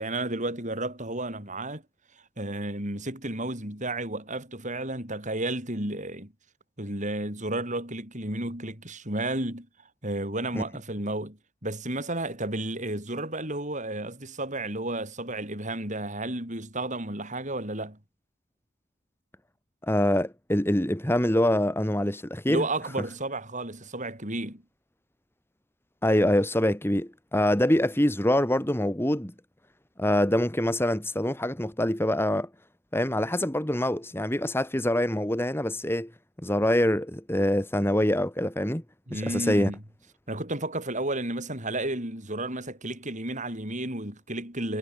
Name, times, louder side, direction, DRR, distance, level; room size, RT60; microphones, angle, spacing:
voice 1, 0.0-1.8 2.4-6.3 6.8-9.7 10.0-18.0 22.5-24.6 39.1-39.8 40.3-44.8, right 1 dB, 35° right, 7.5 m, -32 dB
voice 2, 19.8-22.6 26.0-29.3 30.0-32.5 32.9-36.1 36.4-38.8 39.1-39.7, left 1 dB, 10° left, 1.8 m, -25 dB
head